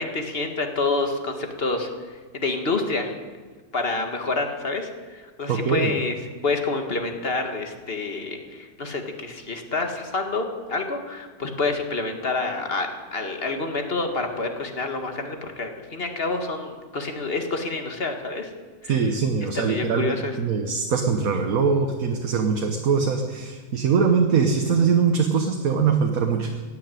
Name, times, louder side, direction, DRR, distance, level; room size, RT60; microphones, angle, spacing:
voice 1, 0.0-3.1 3.7-6.2 6.4-18.5 18.8-19.1 19.5-20.4, left 3 dB, 40° left, 5 dB, 1.8 m, -28 dB
voice 2, 5.5-5.9 18.9-26.6, right 5 dB, 60° right, 4 dB, 1.5 m, -22 dB
16.0 x 9.7 x 9.1 m, 1.4 s
omnidirectional pair, 1.7 m